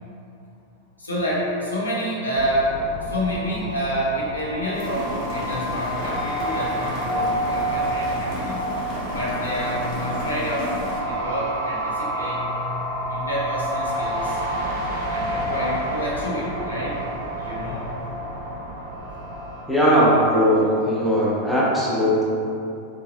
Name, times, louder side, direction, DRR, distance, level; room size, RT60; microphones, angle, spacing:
voice 1, 1.0-8.6 9.1-10.8 11.0-12.7 13.1-14.4 15.1-17.0 17.4-17.8, equal, 80° left, -7 dB, 0.7 m, -28 dB
sound 1, 2.3-19.6, right 1 dB, 45° right, 0.5 m, -29 dB
Rain, 4.7-11.0, left 1 dB, 40° left, 0.7 m, -34 dB
voice 2, 19.7-22.2, equal, ahead, -8 dB, 0.6 m, -19 dB
3.0 x 2.3 x 3.1 m, 2.7 s
figure-of-eight pair, 90°, 0 cm